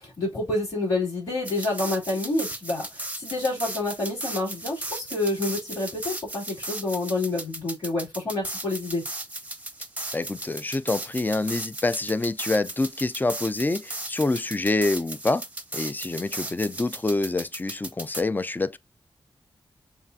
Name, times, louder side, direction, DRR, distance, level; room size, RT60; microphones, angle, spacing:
voice 1, 0.0-9.0, left 2 dB, 35° left, 3.0 m, -28 dB
sound 1, 1.4-18.2, right 2 dB, 15° right, 0.7 m, -36 dB
voice 2, 10.1-15.4 15.7-18.8, left 2 dB, 20° left, 0.4 m, -26 dB
7.0 x 2.4 x 2.7 m
cardioid pair, 65°, 9 cm